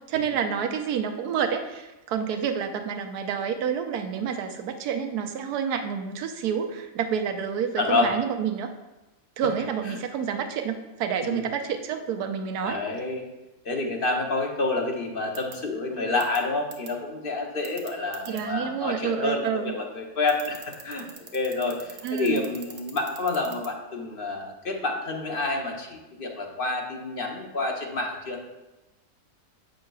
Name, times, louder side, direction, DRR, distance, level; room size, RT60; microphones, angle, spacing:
voice 1, 0.1-8.7 9.4-12.8 18.3-19.7 22.0-22.4, right 7 dB, 90° right, 6 dB, 1.2 m, -28 dB
voice 2, 7.8-8.1 9.9-10.0 11.2-11.5 12.6-13.2 13.6-21.1 21.3-28.4, left 3 dB, 45° left, 2 dB, 0.9 m, -28 dB
sound 1, 15.4-15.5 16.2-16.4 16.7-16.9 17.6-18.4 20.3-23.7, right 7 dB, 70° right, 1.3 m, -41 dB
7.7 x 6.4 x 2.3 m, 1.0 s
omnidirectional pair, 1.6 m